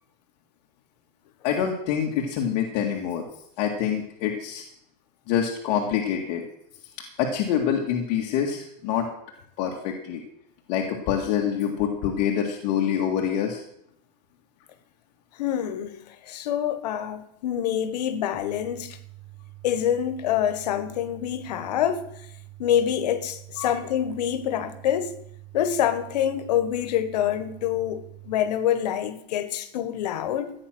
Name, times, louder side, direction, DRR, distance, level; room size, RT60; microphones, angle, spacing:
voice 1, 1.4-3.3 3.6-4.7 5.3-6.4 7.2-9.1 9.6-10.2 10.7-13.6 23.6-23.7, left 8 dB, 45° left, 1.9 m, -26 dB
voice 2, 15.4-19.0 19.6-22.1 22.6-25.1 25.5-30.5, left 10 dB, 80° left, 1.5 m, -26 dB
sound 1, 18.3-28.3, right 18 dB, 40° right, 4.5 m, -46 dB
15.5 x 9.0 x 6.2 m
supercardioid pair, 165°, 21 cm